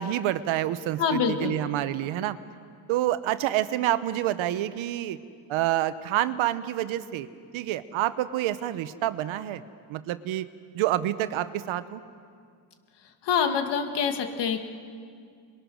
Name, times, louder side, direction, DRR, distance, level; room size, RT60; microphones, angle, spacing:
voice 1, 0.0-2.4 2.9-5.2 5.5-7.3 7.5-9.6 9.9-10.5 10.7-12.0, right 13 dB, 80° right, 13 dB, 1.1 m, -28 dB
voice 2, 1.0-1.6 13.2-14.6, left 7 dB, 60° left, 5 dB, 2.2 m, -25 dB
28.0 x 21.5 x 6.4 m, 2.2 s
cardioid pair, 175°, 47 cm